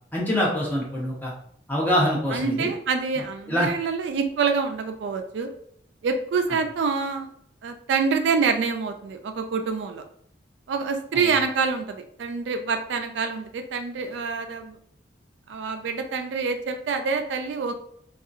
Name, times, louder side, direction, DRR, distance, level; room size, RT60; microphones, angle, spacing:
voice 1, 0.1-1.3 1.7-2.7 3.5-3.7, equal, 10° left, -5 dB, 0.8 m, -24 dB
voice 2, 2.3-5.5 6.0-7.3 7.6-10.0 10.7-14.8 15.5-17.7, right 5 dB, 80° right, 7 dB, 0.3 m, -26 dB
2.7 x 2.3 x 2.5 m, 0.66 s
head